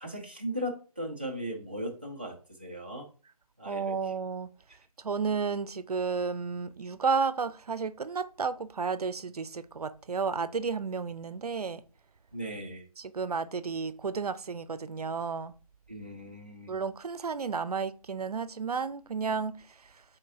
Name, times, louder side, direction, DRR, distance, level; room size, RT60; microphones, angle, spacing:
voice 1, 0.0-3.1 3.6-3.9 12.3-12.8 15.9-16.7, equal, 15° right, 0.3 m, -37 dB
voice 2, 3.6-4.5 5.0-11.8 13.0-15.5 16.7-20.0, right 5 dB, 85° right, 0.4 m, -32 dB
4.4 x 4.0 x 2.6 m
figure-of-eight pair, 160°, 19 cm